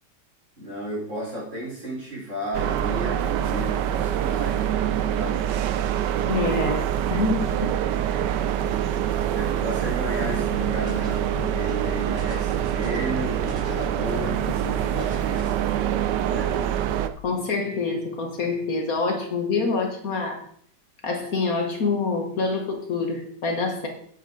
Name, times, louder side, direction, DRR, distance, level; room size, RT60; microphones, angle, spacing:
voice 1, 0.6-5.5 9.3-16.5, equal, 40° right, -5 dB, 4.2 m, -34 dB
sound 1, 2.5-17.1, right 10 dB, 80° right, 1.2 m, -25 dB
voice 2, 6.2-7.8 17.2-20.4 21.0-23.9, left 3 dB, 55° left, 2 dB, 1.6 m, -26 dB
sound 2, 10.2-14.7 15.0-15.4, left 1 dB, 30° left, 1.8 m, -40 dB
8.5 x 8.0 x 3.8 m, 0.63 s
omnidirectional pair, 1.9 m